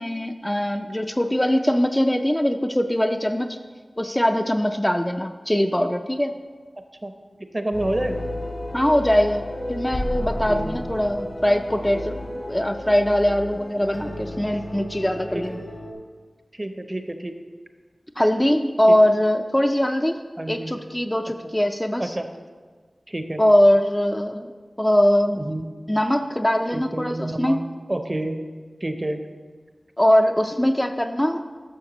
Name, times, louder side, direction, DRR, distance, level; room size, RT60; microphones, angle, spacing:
voice 1, 0.0-3.6 4.0-6.3 8.7-9.4 9.7-15.6 18.2-20.2 20.5-22.2 23.4-24.5 24.8-25.4 25.9-27.6 30.0-31.4, equal, 15° left, 5 dB, 0.4 m, -21 dB
voice 2, 7.5-8.2 10.5-10.9 11.9-12.0 15.3-15.4 16.5-17.4 18.9-19.0 20.4-20.8 22.0-22.3 23.1-23.4 25.4-25.7 26.7-27.6 27.9-28.4 28.8-29.2, right 1 dB, 30° right, 7 dB, 0.7 m, -28 dB
sound 1, 7.7-15.9, left 1 dB, 70° left, 1.8 m, -33 dB
12.0 x 6.4 x 3.0 m, 1.5 s
wide cardioid pair, 50°, 0 cm